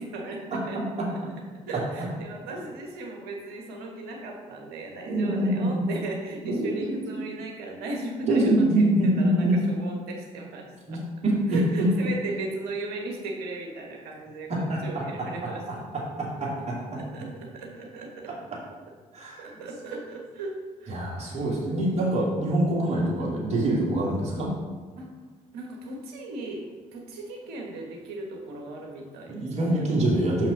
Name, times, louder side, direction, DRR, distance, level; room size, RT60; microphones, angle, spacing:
voice 1, 0.0-0.8 1.1-1.2 1.7-8.9 9.2-11.0 11.5-15.8 16.9-18.3 19.4-21.6 25.0-25.1 25.5-29.9, right 2 dB, 65° right, 1 dB, 1.4 m, -37 dB
voice 2, 0.5-1.3 5.1-5.8 6.4-7.2 8.3-9.6 10.9-11.9 14.5-15.8 16.2-17.0 19.1-19.6 20.9-24.5 29.3-30.5, right 1 dB, 40° right, -4 dB, 2.4 m, -25 dB
6.1 x 5.9 x 5.2 m, 1.4 s
figure-of-eight pair, 45°, 18 cm